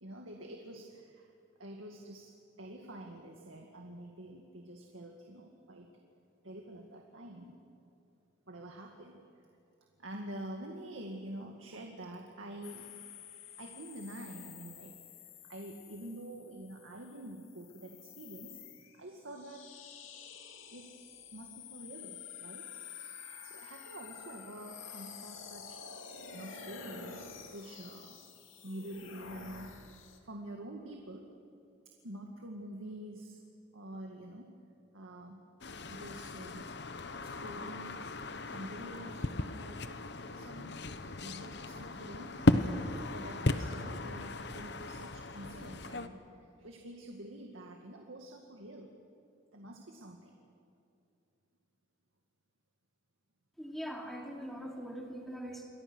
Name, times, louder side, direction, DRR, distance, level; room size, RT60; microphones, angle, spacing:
voice 1, 0.0-1.3 1.6-5.9 6.4-7.6 8.5-9.5 10.0-12.9 13.2-18.6 18.9-19.7 20.7-20.9 21.3-22.8 23.2-25.8 26.3-28.2 28.6-29.7 30.2-31.3 31.9-33.4 33.7-34.5 34.9-35.4 35.9-36.7 37.2-38.1 38.5-40.8 41.2-42.8 43.1-48.9 49.5-50.4, right 1 dB, 85° right, 1 dB, 2.1 m, -47 dB
sound 1, 12.6-30.2, left 6 dB, 85° left, 2.5 m, -50 dB
sound 2, 35.6-46.1, left 2 dB, 55° left, 1.0 m, -35 dB
voice 2, 53.6-55.6, equal, ahead, 0 dB, 2.8 m, -42 dB
28.5 x 23.5 x 6.3 m, 2.6 s
head